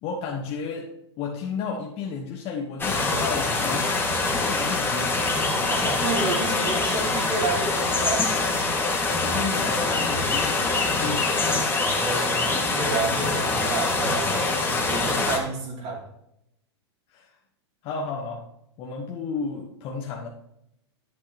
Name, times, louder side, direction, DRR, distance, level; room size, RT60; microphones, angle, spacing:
voice 1, 0.0-3.9 4.3-5.2 9.1-11.3 17.1-17.3 17.8-18.5 18.8-20.3, left 5 dB, 40° left, 0 dB, 1.2 m, -33 dB
sound 1, 2.8-15.4, left 3 dB, 15° left, 1.8 m, -24 dB
voice 2, 5.7-8.3 11.4-16.0, right 3 dB, 45° right, -2 dB, 2.7 m, -30 dB
10.0 x 8.6 x 2.9 m, 0.78 s
hypercardioid pair, 105°, 14 cm